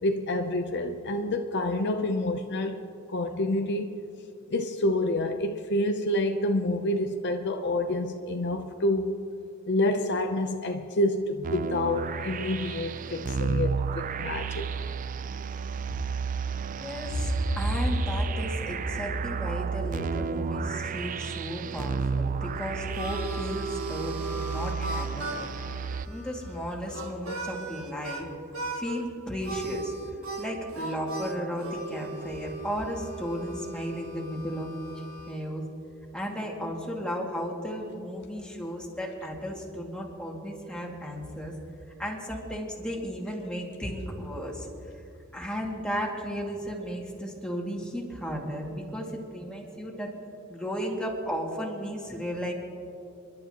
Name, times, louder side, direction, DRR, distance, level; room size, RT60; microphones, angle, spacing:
voice 1, 0.0-3.9 4.5-9.2 9.7-14.6, left 1 dB, 55° left, 0.7 m, -28 dB
sound 1, 11.4-26.1, right 5 dB, 40° right, 0.3 m, -32 dB
voice 2, 16.8-25.5 26.0-28.3 28.7-35.6 36.1-41.6 42.0-45.0 45.3-50.2 50.5-52.5, equal, 5° left, 2.2 m, -34 dB
Harmonica, 22.4-28.2 28.5-29.0 29.4-35.4, right 2 dB, 75° right, 1.8 m, -37 dB
29.5 x 12.0 x 3.0 m
head